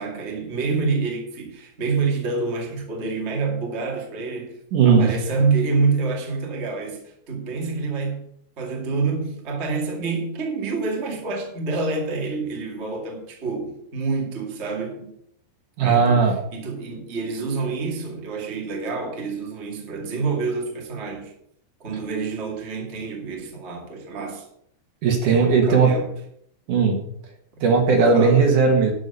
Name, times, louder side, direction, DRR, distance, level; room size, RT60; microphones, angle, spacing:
voice 1, 0.0-4.6 4.8-8.3 8.6-15.1 15.8-21.3 21.8-24.5 25.2-26.1 28.0-28.6, right 4 dB, 25° right, 1.9 m, -27 dB
voice 2, 4.7-5.1 15.8-16.3 25.0-25.9 26.7-27.0 27.6-28.9, right 5 dB, 60° right, 3.1 m, -17 dB
11.5 x 6.2 x 6.9 m
omnidirectional pair, 4.3 m